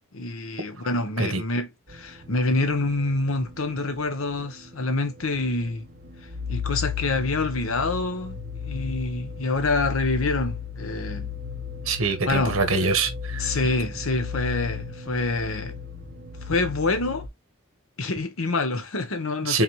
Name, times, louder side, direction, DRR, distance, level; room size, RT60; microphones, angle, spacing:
voice 1, 0.1-5.9 6.5-8.4 8.6-11.3 12.3-12.6 13.4-15.8 16.4-17.3 18.0-19.6, left 2 dB, 70° left, 1.0 m, -26 dB
sound 1, 1.9-4.0 4.5-4.6 5.1-17.3, left 6 dB, 45° right, 1.0 m, -35 dB
voice 2, 11.9-13.5 19.5-19.6, right 4 dB, 75° right, 1.3 m, -24 dB
4.2 x 3.8 x 3.0 m
head